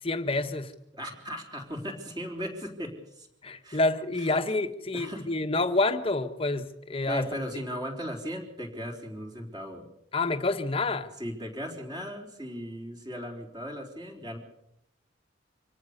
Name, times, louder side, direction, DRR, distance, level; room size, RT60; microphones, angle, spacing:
voice 1, 0.0-0.7 3.4-7.3 10.1-11.1, left 2 dB, 30° left, 8 dB, 1.3 m, -28 dB
voice 2, 0.9-3.3 3.6-3.8 4.2-4.3 4.9-5.3 7.1-9.8 11.2-14.4, equal, 25° right, 2 dB, 4.1 m, -37 dB
25.5 x 18.0 x 6.8 m, 0.78 s
head